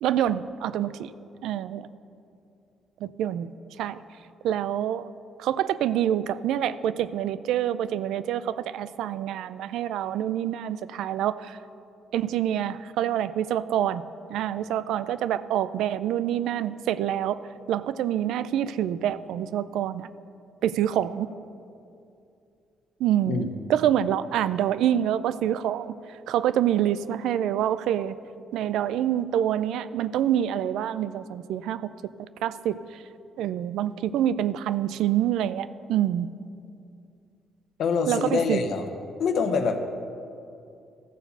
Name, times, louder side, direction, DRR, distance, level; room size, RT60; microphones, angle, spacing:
voice 1, 0.0-1.1 1.4-1.9 3.0-3.5 3.8-4.0 4.4-5.1 5.4-11.6 12.1-14.0 14.3-17.4 17.7-20.1 20.6-21.3 23.0-26.0 26.3-28.2 28.5-31.9 32.2-32.8 33.4-36.3 38.1-38.6, right 11 dB, 85° right, 15 dB, 0.3 m, -26 dB
voice 2, 37.8-38.9 39.2-39.8, left 5 dB, 70° left, 7 dB, 0.9 m, -25 dB
14.0 x 4.7 x 6.7 m, 2.6 s
cardioid pair, 90°, 0 cm